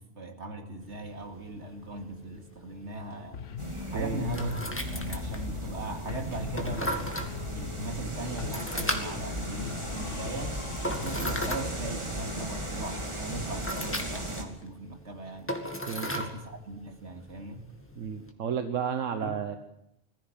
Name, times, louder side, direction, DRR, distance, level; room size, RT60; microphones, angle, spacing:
voice 1, 0.0-3.4 3.9-4.6 4.9-7.1 7.5-15.5 16.0-17.7 19.2-19.6, right 2 dB, 65° right, 5 dB, 2.7 m, -39 dB
sound 1, 0.8-18.3, equal, 10° left, 2.1 m, -38 dB
sound 2, 3.3-5.8 6.1-8.1 8.4-11.8, left 7 dB, 75° left, 1.4 m, -40 dB
sound 3, 3.6-14.4, right 1 dB, 25° right, 2.5 m, -37 dB
voice 2, 3.9-4.3 15.9-16.2 18.0-19.6, right 7 dB, 85° right, 8 dB, 1.5 m, -32 dB
21.5 x 15.0 x 9.0 m, 0.84 s
omnidirectional pair, 1.3 m